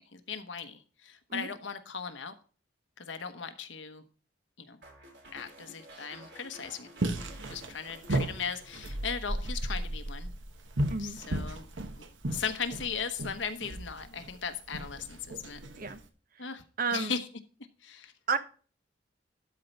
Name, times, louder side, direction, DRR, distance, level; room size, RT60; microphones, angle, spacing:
voice 1, 0.1-2.3 3.0-4.0 4.6-4.8 5.3-7.2 7.5-10.3 11.0-11.7 11.9-12.0 12.3-15.6 16.4-16.6 16.9-17.3 17.8-18.1, left 6 dB, 75° left, 1.1 m, -38 dB
sound 1, 4.8-9.3 9.5-10.0, right 1 dB, 65° right, 3.3 m, -53 dB
sound 2, 7.0-16.0, right 1 dB, 85° right, 1.1 m, -35 dB
voice 2, 16.8-17.1 18.3-18.4, right 4 dB, 50° right, 0.9 m, -31 dB
12.5 x 4.4 x 5.2 m
head